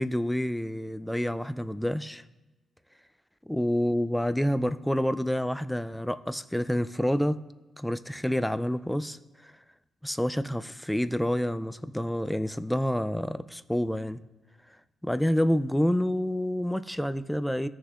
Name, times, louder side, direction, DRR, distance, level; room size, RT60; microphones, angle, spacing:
voice 1, 0.0-2.2 3.5-7.4 7.8-9.2 9.4-9.5 10.0-14.2 15.0-17.7, equal, 5° left, 13 dB, 0.4 m, -28 dB
16.5 x 6.3 x 2.4 m, 1.1 s
cardioid pair, 95°, 0 cm